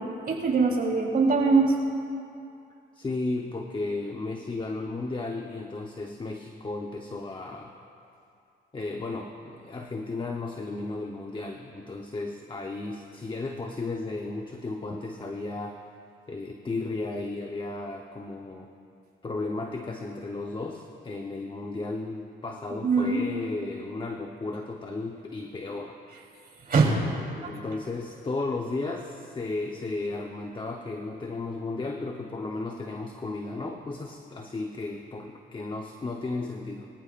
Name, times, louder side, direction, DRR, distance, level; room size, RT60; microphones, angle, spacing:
voice 1, 0.3-1.7 22.8-23.2 26.7-26.9 27.4-27.5, right 4 dB, 50° right, -2 dB, 3.5 m, -22 dB
voice 2, 2.9-7.8 8.7-15.8 16.3-18.7 19.2-26.0 27.3-36.9, left 3 dB, 25° left, 2 dB, 0.9 m, -34 dB
24.0 x 15.0 x 2.5 m, 2.5 s
cardioid pair, 90°, 20 cm